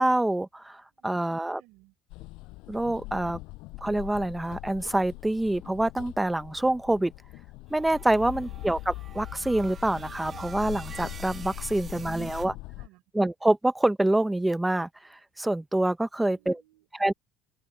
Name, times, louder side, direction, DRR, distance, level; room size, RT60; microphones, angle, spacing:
voice 1, 0.0-1.6 2.7-3.4 3.8-7.1 7.7-12.5 13.1-16.6 17.0-17.1, right 1 dB, 5° right, 0.6 m, -26 dB
voice 2, 0.9-2.0 8.2-8.6 11.7-13.0 16.2-16.9, right 20 dB, 85° right, 5.4 m, -60 dB
sound 1, 2.1-12.9, left 22 dB, 75° left, 6.0 m, -42 dB
sound 2, 7.7-12.5, right 6 dB, 25° right, 1.4 m, -47 dB
open air
cardioid pair, 175°, 0 cm